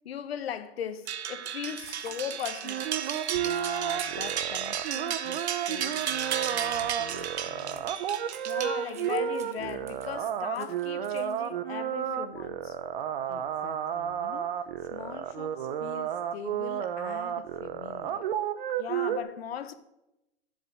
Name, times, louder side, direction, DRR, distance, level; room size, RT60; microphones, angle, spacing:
voice 1, 0.0-2.9 8.4-12.7 18.8-19.7, left 9 dB, 65° left, 1.3 m, -37 dB
sound 1, 1.1-9.2, right 9 dB, 75° right, 1.2 m, -34 dB
sound 2, 1.5-11.5, right 8 dB, 15° right, 0.3 m, -53 dB
sound 3, 2.6-19.2, right 10 dB, 50° right, 0.9 m, -32 dB
voice 2, 3.3-8.1 13.3-18.2, left 10 dB, 50° left, 0.7 m, -45 dB
10.5 x 8.0 x 7.7 m
hypercardioid pair, 160°, 33 cm